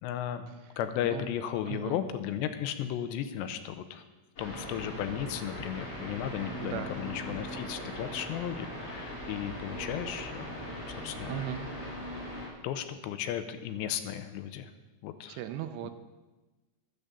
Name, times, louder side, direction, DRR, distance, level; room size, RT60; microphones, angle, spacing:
voice 1, 0.0-4.0 4.4-11.4 12.6-14.7 15.0-15.4, left 10 dB, 85° left, 10 dB, 2.9 m, -35 dB
voice 2, 1.7-2.0 6.6-6.9 11.3-11.7 15.3-15.9, right 11 dB, 80° right, 9 dB, 2.7 m, -37 dB
sound 1, 4.4-12.5, equal, 35° left, 5.6 m, -40 dB
12.5 x 9.6 x 6.9 m, 1.2 s
omnidirectional pair, 5.0 m